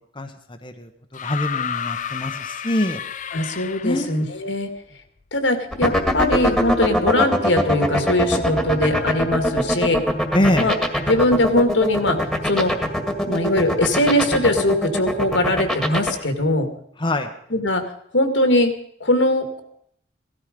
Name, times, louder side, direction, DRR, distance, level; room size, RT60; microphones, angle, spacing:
sound 1, 1.1-4.2 5.4-5.5, left 8 dB, 45° left, 0.6 m, -30 dB
voice 1, 1.2-3.0 3.8-4.1 10.3-10.7 17.0-17.3, left 1 dB, 25° left, 4 dB, 1.1 m, -23 dB
voice 2, 3.3-4.7 5.3-10.0 10.6-10.7 11.1-12.7 13.3-16.7 17.5-17.8 18.1-18.7 19.0-19.6, left 1 dB, 80° left, 7 dB, 2.1 m, -21 dB
sound 2, 5.7-16.1, equal, ahead, 2.0 m, -21 dB
17.5 x 13.5 x 5.2 m, 0.70 s
head